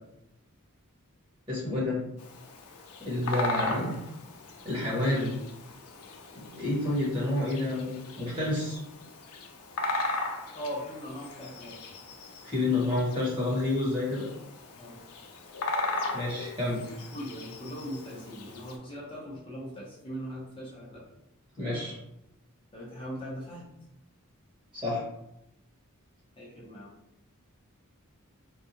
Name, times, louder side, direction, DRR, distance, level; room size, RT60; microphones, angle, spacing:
voice 1, 1.5-2.0 3.0-4.0 4.6-5.3 6.3-8.8 12.4-14.3 16.1-16.8 21.6-22.0 24.7-25.0, left 2 dB, 25° right, -6 dB, 1.4 m, -29 dB
Bird vocalization bird call bird song, 2.2-18.8, left 2 dB, 90° left, 0.5 m, -38 dB
voice 2, 10.5-11.8 14.7-15.0 17.1-21.0 22.7-23.7 26.4-26.9, equal, 25° left, -7 dB, 0.8 m, -40 dB
3.5 x 2.3 x 2.8 m, 0.83 s
head